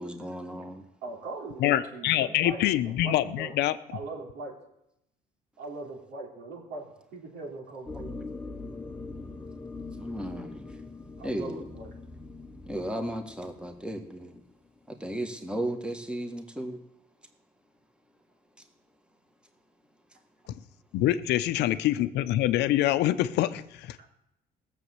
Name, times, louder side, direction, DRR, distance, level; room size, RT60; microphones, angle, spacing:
voice 1, 0.0-0.8 10.0-10.7 11.2-11.7 12.7-14.4 14.9-16.8, right 1 dB, 5° right, 5 dB, 1.7 m, -35 dB
voice 2, 1.0-3.5 3.9-4.6 5.6-8.2 11.2-11.9 24.0-24.1, right 3 dB, 90° right, -1 dB, 3.8 m, -40 dB
voice 3, 1.6-3.8 20.9-24.0, left 13 dB, 80° left, 13 dB, 0.7 m, -25 dB
sound 1, 7.8-14.4, left 3 dB, 10° left, 1.0 m, -42 dB
16.5 x 7.2 x 7.9 m, 0.84 s
cardioid pair, 110°, 17 cm